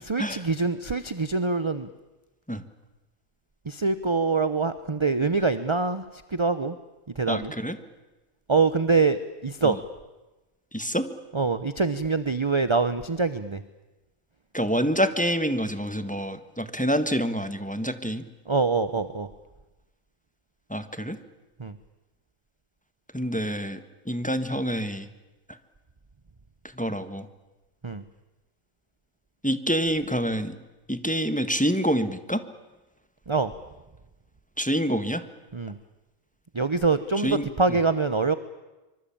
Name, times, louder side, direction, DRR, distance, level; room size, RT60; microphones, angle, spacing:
voice 1, 0.0-1.9 3.7-6.0 6.3-6.8 7.2-7.5 8.5-9.8 11.3-13.6 18.5-19.3 21.6-21.7 27.8-28.0 33.3-33.5 35.5-35.8 36.5-38.3, right 4 dB, 25° right, 12 dB, 0.8 m, -24 dB
voice 2, 7.3-7.8 9.6-9.8 10.7-11.1 14.5-18.2 20.7-21.2 23.1-25.1 26.7-27.3 29.4-30.6 30.9-32.4 34.6-35.2 37.2-37.8, equal, 5° left, 10 dB, 1.4 m, -27 dB
25.0 x 25.0 x 8.7 m, 1.1 s
omnidirectional pair, 1.3 m